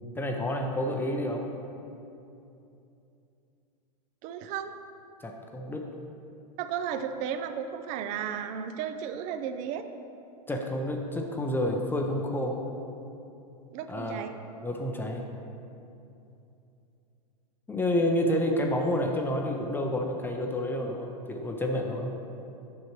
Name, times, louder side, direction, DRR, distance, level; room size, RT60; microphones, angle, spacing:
voice 1, 0.2-1.5 5.2-5.9 10.5-12.6 13.9-14.2 14.6-15.3 17.7-22.1, left 1 dB, 10° left, 2 dB, 0.6 m, -29 dB
voice 2, 4.2-4.7 6.6-9.9 13.7-14.3, right 8 dB, 40° right, 9 dB, 0.5 m, -34 dB
8.8 x 6.3 x 3.0 m, 2.7 s
hypercardioid pair, 115°, 20 cm